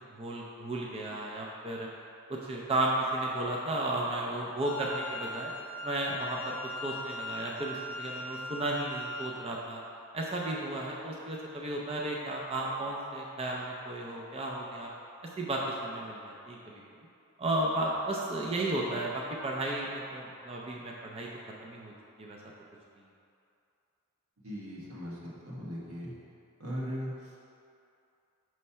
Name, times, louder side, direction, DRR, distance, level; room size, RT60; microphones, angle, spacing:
voice 1, 0.1-1.9 2.3-5.5 5.8-6.6 6.8-9.8 10.1-14.9 15.4-16.8 17.4-21.3 21.6-21.9 22.2-22.4, right 1 dB, 25° right, -3 dB, 0.5 m, -33 dB
Wind instrument woodwind instrument, 4.6-9.5, left 2 dB, 85° left, 0.5 m, -40 dB
voice 2, 24.4-26.2 26.6-27.4, equal, 85° right, -5 dB, 1.3 m, -39 dB
5.6 x 3.2 x 5.5 m, 2.6 s
head